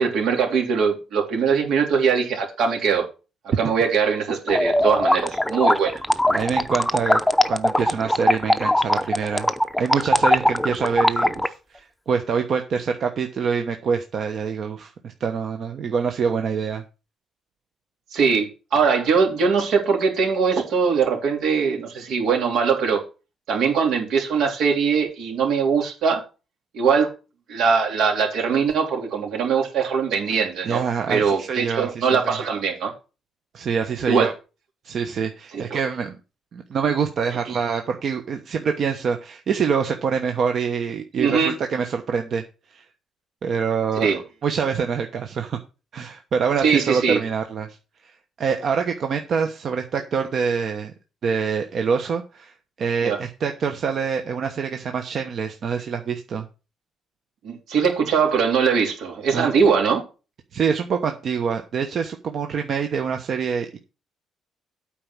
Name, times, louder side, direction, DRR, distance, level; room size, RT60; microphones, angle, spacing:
voice 1, 0.0-3.0 3.6-5.9 18.1-23.0 23.5-26.2 26.7-27.1 27.5-32.9 34.1-34.3 35.5-35.8 37.5-37.6 41.2-41.5 44.0-44.2 46.6-47.2 53.0-53.2 57.4-60.0, right 6 dB, 75° right, 2 dB, 3.3 m, -21 dB
sound 1, 4.5-11.5, left 1 dB, 5° left, 0.7 m, -20 dB
voice 2, 6.3-7.2 7.5-9.5 9.8-14.9 15.2-16.8 30.6-32.4 33.5-34.3 34.8-36.2 36.5-42.4 42.7-42.8 43.4-45.6 45.9-47.8 48.0-48.1 48.4-50.9 51.2-56.5 59.3-59.5 60.5-63.8, right 6 dB, 50° right, 5 dB, 1.0 m, -25 dB
8.7 x 5.0 x 7.3 m, 0.31 s
cardioid pair, 125°, 0 cm